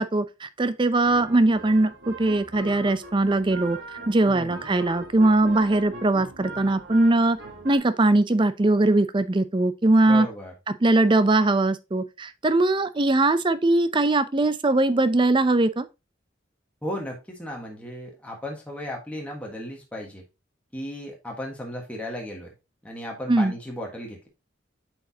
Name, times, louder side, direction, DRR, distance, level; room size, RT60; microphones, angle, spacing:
voice 1, 0.0-3.8 4.1-7.4 7.6-10.3 10.7-15.9 23.3-23.5, right 2 dB, 25° right, 0.5 m, -21 dB
sound 1, 1.0-7.8, right 2 dB, 85° right, 2.2 m, -40 dB
voice 2, 4.3-4.7 10.1-10.5 16.8-20.2 20.7-22.5 22.8-24.3, equal, 5° left, 1.4 m, -35 dB
7.8 x 4.7 x 2.8 m
head